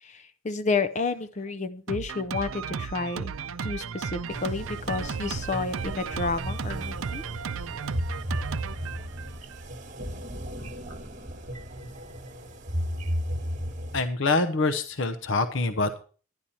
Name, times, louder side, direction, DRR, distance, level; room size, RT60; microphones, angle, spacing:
voice 1, 0.0-3.3 3.6-7.2, left 4 dB, 35° left, 12 dB, 0.5 m, -30 dB
Drum kit, 1.9-9.7, right 6 dB, 75° right, 0.5 m, -35 dB
sound 1, 4.3-14.0, equal, 35° right, 1.3 m, -35 dB
voice 2, 13.9-16.0, left 3 dB, 65° left, 9 dB, 0.8 m, -25 dB
11.5 x 10.5 x 4.3 m, 0.38 s
head